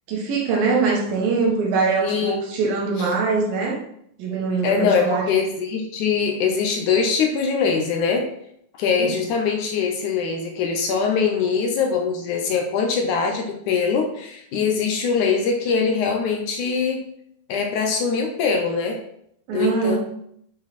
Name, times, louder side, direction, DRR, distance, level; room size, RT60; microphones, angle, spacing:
voice 1, 0.1-3.8 4.2-5.3 9.0-9.2 19.5-20.0, right 4 dB, 85° right, -2 dB, 3.4 m, -22 dB
voice 2, 2.0-2.4 4.6-8.3 8.8-17.0 17.5-19.0 19.5-20.0, left 5 dB, 70° left, 2 dB, 2.3 m, -22 dB
8.8 x 5.5 x 4.3 m, 0.72 s
omnidirectional pair, 4.0 m